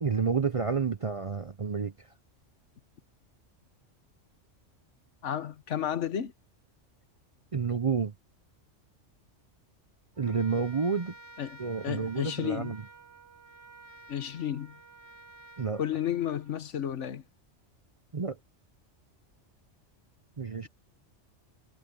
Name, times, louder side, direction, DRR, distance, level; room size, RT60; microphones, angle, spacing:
voice 1, 0.0-1.9 7.5-8.1 10.2-11.1 11.6-12.8 15.6-15.8 18.1-18.4 20.4-20.7, right 5 dB, 35° right, 0.6 m, -29 dB
voice 2, 5.2-6.3 11.4-11.6 11.8-12.7 14.1-14.8 15.8-17.2, left 10 dB, 75° left, 1.3 m, -32 dB
Trumpet, 10.1-16.7, right 3 dB, 65° right, 5.1 m, -52 dB
omnidirectional pair, 1.3 m